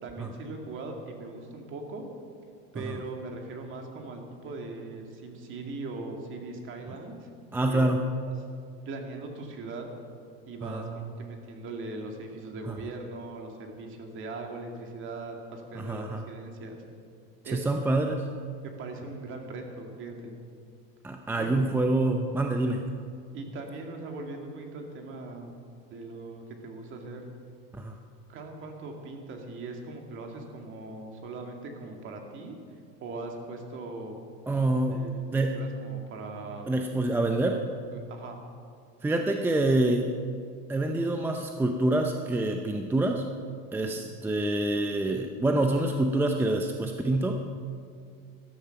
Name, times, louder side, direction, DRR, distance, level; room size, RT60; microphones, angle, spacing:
voice 1, 0.0-2.0 2.7-7.3 7.7-7.8 8.9-9.9 10.5-16.8 17.4-17.7 18.6-20.4 21.4-21.7 23.3-25.5 25.9-27.2 28.3-32.6 33.0-34.2 34.9-36.7 37.9-38.4 43.7-44.0, right 3 dB, 40° right, 3 dB, 2.3 m, -40 dB
voice 2, 7.5-8.1 10.6-11.1 12.7-12.8 15.8-16.2 17.4-18.2 21.0-22.8 27.8-27.9 34.5-35.0 35.3-35.6 36.7-37.6 39.0-40.1 40.7-43.2 43.7-47.4, right 2 dB, 5° right, 4 dB, 0.6 m, -26 dB
13.5 x 13.0 x 5.9 m, 2.3 s
supercardioid pair, 140°, 31 cm